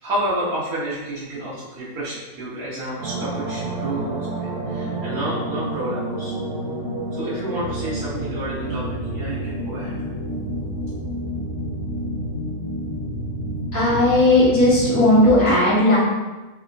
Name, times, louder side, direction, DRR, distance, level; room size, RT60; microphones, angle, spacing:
voice 1, 0.0-6.3 7.1-10.1, right 1 dB, 80° right, -11 dB, 1.5 m, -30 dB
sound 1, 3.0-15.2, right 1 dB, 65° right, 1.0 m, -29 dB
voice 2, 13.7-16.0, left 1 dB, 65° left, -13 dB, 1.4 m, -16 dB
3.6 x 3.0 x 2.4 m, 1.1 s
omnidirectional pair, 1.6 m